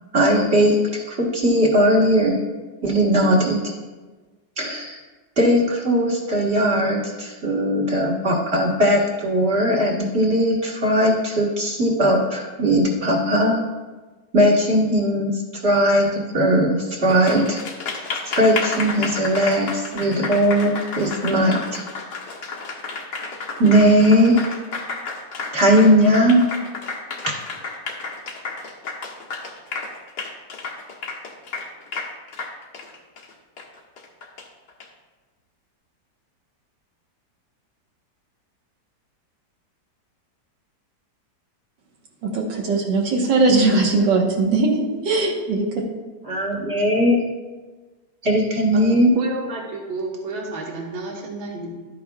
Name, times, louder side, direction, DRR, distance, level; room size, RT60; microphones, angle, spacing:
voice 1, 0.1-2.4 2.8-3.7 4.6-5.0 5.4-13.6 14.3-17.6 18.4-21.8 23.6-24.5 25.5-26.5 46.3-47.2 48.2-49.1, equal, 40° right, -2 dB, 1.8 m, -18 dB
Applause, 17.1-34.8, left 4 dB, 75° left, 1.8 m, -32 dB
voice 2, 42.2-45.7, right 3 dB, 85° right, 0 dB, 2.1 m, -20 dB
voice 3, 49.1-51.7, right 3 dB, 65° right, -1 dB, 1.8 m, -30 dB
12.0 x 9.3 x 2.4 m, 1.3 s
omnidirectional pair, 1.9 m